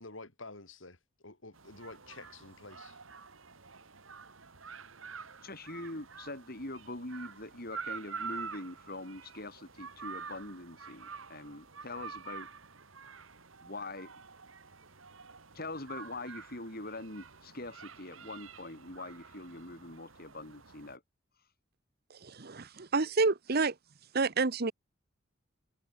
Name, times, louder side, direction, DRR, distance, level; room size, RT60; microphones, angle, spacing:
voice 1, 0.0-3.0, left 3 dB, 75° left, 3.9 m, -49 dB
sound 1, 1.5-21.0, right 5 dB, 85° right, 2.7 m, -48 dB
voice 2, 5.4-12.5 13.6-14.1 15.5-21.0, left 2 dB, 50° left, 6.4 m, -43 dB
voice 3, 22.2-23.7 24.1-24.7, right 4 dB, 50° right, 1.0 m, -29 dB
head